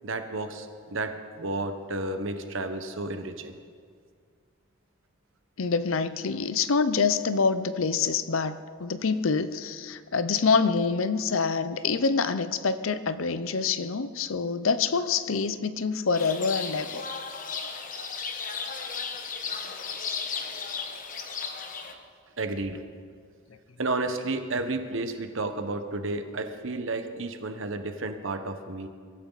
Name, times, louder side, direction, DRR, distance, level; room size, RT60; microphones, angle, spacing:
voice 1, 0.0-3.6 22.4-22.8 23.8-28.9, right 2 dB, 70° right, 7 dB, 1.2 m, -32 dB
voice 2, 5.6-17.0, left 5 dB, 75° left, 13 dB, 0.7 m, -26 dB
sound 1, 16.1-21.9, left 5 dB, 40° left, 1.3 m, -35 dB
22.5 x 14.0 x 4.1 m, 2.1 s
head